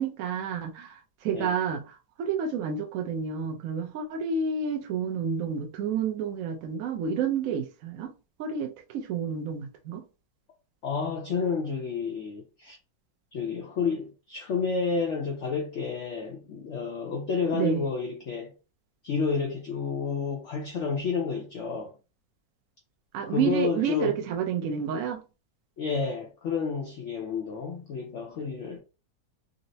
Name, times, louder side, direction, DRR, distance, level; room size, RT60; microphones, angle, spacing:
voice 1, 0.0-8.1 8.4-10.1 17.5-17.9 23.1-25.2, right 6 dB, 70° right, 0.8 m, -30 dB
voice 2, 10.8-12.8 13.3-18.5 19.0-21.9 23.3-24.2 25.8-28.8, left 5 dB, 65° left, 0.7 m, -30 dB
3.9 x 2.0 x 2.6 m
omnidirectional pair, 2.0 m